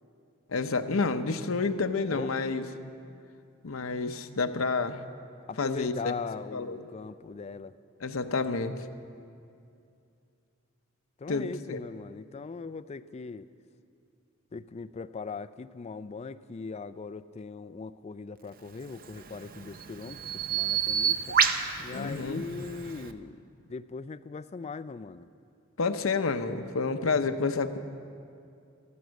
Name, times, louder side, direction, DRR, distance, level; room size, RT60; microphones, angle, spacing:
voice 1, 0.5-2.6 3.6-5.0 5.6-6.1 6.5-6.8 8.0-8.8 11.3-11.8 21.9-22.4 25.8-27.8, left 4 dB, 85° left, 8 dB, 0.7 m, -29 dB
voice 2, 5.5-7.7 11.2-13.5 14.5-21.4 21.8-25.3, left 4 dB, 30° left, 12 dB, 0.3 m, -40 dB
Bird vocalization bird call bird song, 18.9-23.1, right 7 dB, 45° right, 0.6 m, -30 dB
14.0 x 14.0 x 6.3 m, 2.5 s
head